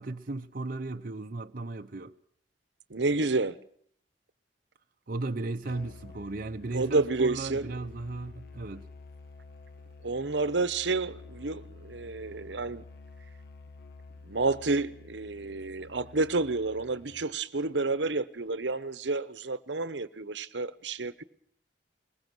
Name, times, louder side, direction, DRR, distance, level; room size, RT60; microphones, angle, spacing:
voice 1, 0.0-2.1 5.1-8.9, right 2 dB, 50° right, 0.8 m, -36 dB
voice 2, 2.9-3.6 6.7-7.7 10.0-12.8 14.3-21.2, right 3 dB, 75° right, 1.0 m, -30 dB
Musical instrument, 5.6-17.3, left 3 dB, 60° left, 1.6 m, -50 dB
21.5 x 21.0 x 6.1 m
head